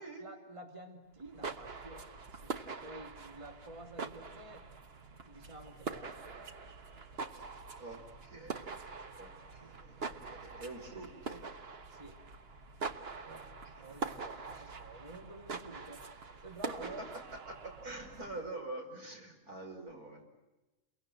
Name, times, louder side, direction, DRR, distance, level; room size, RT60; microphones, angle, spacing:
voice 1, 0.0-4.7 5.3-6.6 11.9-12.2 13.8-16.1 16.4-17.0, right 2 dB, 20° right, 5 dB, 2.4 m, -50 dB
sound 1, 1.2-18.5, right 4 dB, 40° right, 1.4 m, -44 dB
voice 2, 7.8-8.8 9.2-11.5 13.2-14.1 14.5-14.8 16.6-17.1 17.5-20.2, right 2 dB, 70° right, 3 dB, 5.9 m, -46 dB
29.5 x 23.5 x 7.7 m, 1.1 s
omnidirectional pair, 1.7 m